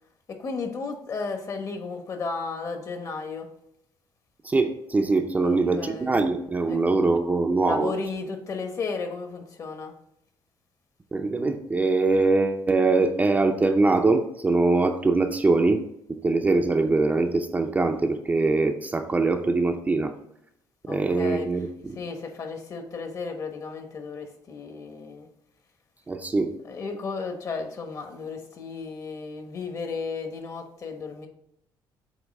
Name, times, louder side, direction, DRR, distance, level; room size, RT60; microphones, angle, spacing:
voice 1, 0.3-3.5 5.4-6.2 6.7-6.8 7.6-9.9 20.9-25.3 26.6-31.3, left 4 dB, 40° left, 5 dB, 1.2 m, -34 dB
voice 2, 4.4-7.9 11.1-15.8 16.1-20.1 20.9-22.0 26.1-26.5, right 3 dB, 20° right, 5 dB, 0.6 m, -23 dB
8.1 x 2.8 x 5.3 m, 0.77 s
cardioid pair, 125°, 8 cm